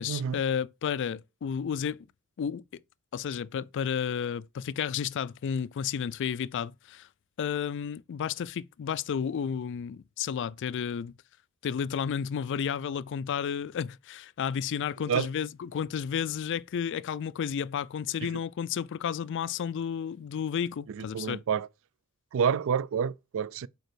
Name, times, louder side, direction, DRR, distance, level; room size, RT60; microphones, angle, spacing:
voice 1, 0.0-2.1 2.4-2.6 3.1-7.1 7.4-11.1 11.6-21.4, left 7 dB, 55° left, 0.3 m, -32 dB
voice 2, 20.9-21.7 22.3-23.7, right 7 dB, 60° right, 0.3 m, -28 dB
5.3 x 4.4 x 6.0 m
head